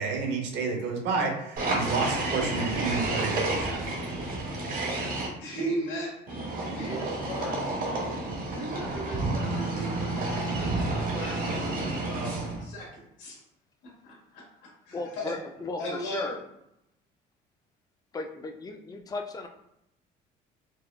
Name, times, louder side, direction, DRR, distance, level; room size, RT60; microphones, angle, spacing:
voice 1, 0.0-3.9, right 4 dB, 75° right, 3 dB, 0.8 m, -30 dB
sound 1, 1.6-5.3 6.3-12.7, right 2 dB, 50° right, 1.2 m, -30 dB
voice 2, 5.4-6.4 6.7-7.7 8.5-13.4 13.8-15.3 15.8-16.3, right 1 dB, 85° left, -4 dB, 1.4 m, -37 dB
voice 3, 14.9-16.4 18.1-19.5, left 3 dB, 20° left, 4 dB, 0.4 m, -35 dB
4.6 x 2.2 x 2.2 m, 0.83 s
supercardioid pair, 90°, 18 cm